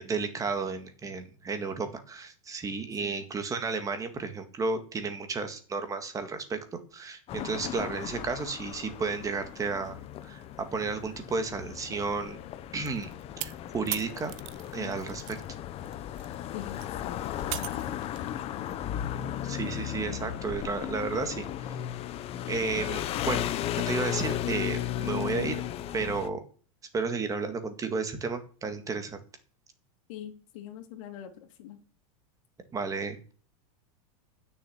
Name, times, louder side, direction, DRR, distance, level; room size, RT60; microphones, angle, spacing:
voice 1, 0.0-10.4 10.7-12.4 12.7-13.1 13.4-14.3 14.7-15.2 19.4-21.5 22.5-23.4 23.7-25.6 25.9-26.4 26.9-29.2 32.7-33.3, right 4 dB, 20° right, 8 dB, 1.9 m, -32 dB
sound 1, 7.3-26.3, left 12 dB, 35° left, 0.9 m, -35 dB
sound 2, 12.9-15.5 15.8-18.3, right 17 dB, 55° right, 0.8 m, -39 dB
voice 2, 14.7-15.1 16.5-17.8 18.3-18.7 20.1-20.2 30.1-31.8, left 10 dB, 60° left, 6 dB, 2.5 m, -44 dB
9.5 x 6.9 x 8.6 m, 0.41 s
supercardioid pair, 135°, 18 cm